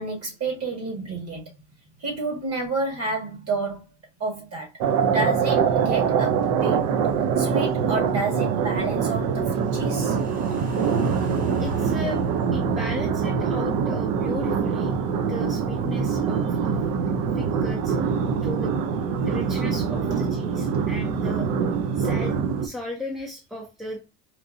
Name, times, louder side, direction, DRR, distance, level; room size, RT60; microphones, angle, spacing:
voice 1, 0.0-1.5 2.0-3.9 4.2-4.7 5.0-6.9 7.4-10.2 19.5-19.6 20.1-20.3 20.7-20.9, right 3 dB, 45° right, 1.9 m, -30 dB
sound 1, 4.8-22.7, right 6 dB, 60° right, 0.6 m, -24 dB
sound 2, 9.6-15.9 16.3-16.4, right 2 dB, 25° right, 1.2 m, -38 dB
voice 2, 11.6-15.0 15.3-16.8 17.3-18.0 18.4-18.7 19.2-21.5 22.0-22.4 22.6-24.0, left 1 dB, ahead, 0.5 m, -36 dB
4.4 x 2.7 x 2.6 m
cardioid pair, 140°, 36 cm